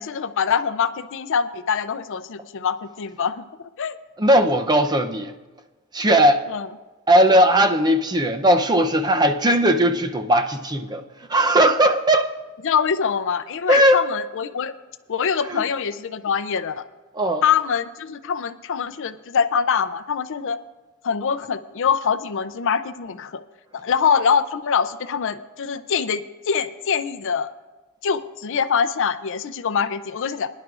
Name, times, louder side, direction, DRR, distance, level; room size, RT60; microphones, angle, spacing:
voice 1, 0.0-3.4 3.8-4.0 6.5-6.7 12.6-14.7 15.1-16.8 17.4-20.6 21.0-23.4 23.7-27.5 28.0-30.5, left 6 dB, 60° left, 0.5 m, -24 dB
voice 2, 4.2-5.3 5.9-6.4 7.1-11.0 11.3-12.3 13.7-14.0 15.5-15.6 17.1-17.4, right 1 dB, 20° right, 0.6 m, -18 dB
21.5 x 10.5 x 2.5 m
head